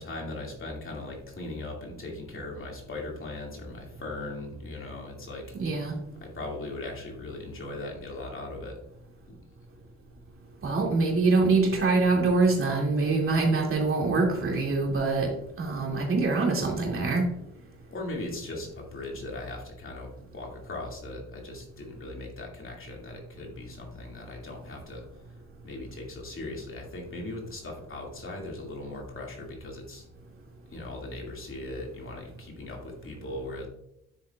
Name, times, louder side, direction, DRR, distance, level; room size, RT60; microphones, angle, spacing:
voice 1, 0.0-5.6 6.2-8.8 9.3-9.4 17.9-25.1 25.6-30.0 30.7-33.7, left 2 dB, 45° left, 0 dB, 2.4 m, -39 dB
voice 2, 5.6-5.9 10.6-15.3 15.6-17.2, right 3 dB, 45° right, -1 dB, 2.5 m, -24 dB
10.0 x 7.3 x 2.4 m, 0.79 s
cardioid pair, 105°, 30 cm